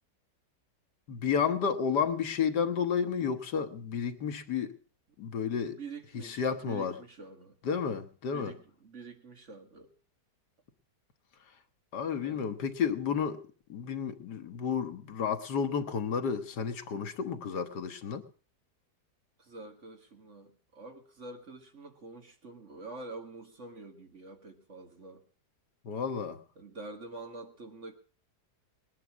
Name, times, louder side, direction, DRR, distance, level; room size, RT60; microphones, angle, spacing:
voice 1, 1.1-4.7 5.2-5.8 6.2-7.0 7.6-8.5 11.9-13.4 13.7-18.3 25.8-26.4, left 6 dB, 85° left, 1.7 m, -31 dB
voice 2, 5.7-7.6 8.3-9.9 12.2-12.5 19.4-25.2 26.6-27.9, right 3 dB, 45° right, 2.2 m, -47 dB
20.0 x 10.0 x 6.1 m
omnidirectional pair, 1.7 m